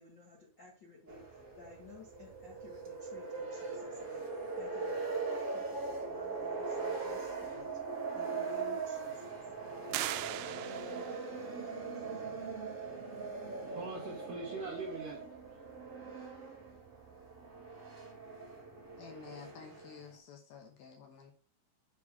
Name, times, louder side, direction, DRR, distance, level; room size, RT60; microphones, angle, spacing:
voice 1, 0.0-7.7 8.1-9.5 9.9-10.4 11.9-12.4, left 3 dB, 85° left, -4 dB, 1.0 m, -56 dB
sound 1, 1.1-20.1, right 4 dB, 40° right, 1.1 m, -40 dB
sound 2, 9.9-11.3, right 14 dB, 90° right, 2.9 m, -38 dB
voice 2, 13.2-15.2, right 3 dB, 70° right, -1 dB, 1.9 m, -43 dB
voice 3, 19.0-21.3, left 7 dB, 70° left, 3 dB, 2.5 m, -51 dB
7.4 x 4.3 x 4.7 m, 0.39 s
omnidirectional pair, 5.2 m